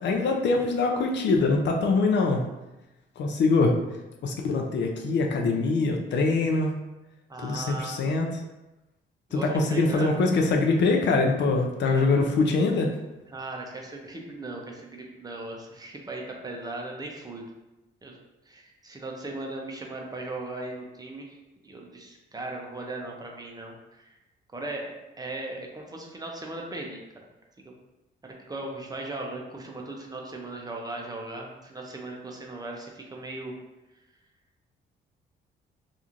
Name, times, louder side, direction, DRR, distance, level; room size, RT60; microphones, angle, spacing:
voice 1, 0.0-2.4 3.2-3.7 4.2-6.7 7.4-8.4 9.3-12.9, left 3 dB, 60° left, 1 dB, 0.5 m, -23 dB
voice 2, 7.3-8.0 9.3-10.1 11.9-12.2 13.3-17.4 18.0-18.2 18.5-21.2 21.6-24.2 24.5-27.0 28.2-33.5, right 2 dB, 20° right, 0 dB, 0.5 m, -38 dB
3.0 x 2.5 x 2.4 m, 1.0 s
cardioid pair, 90°, 20 cm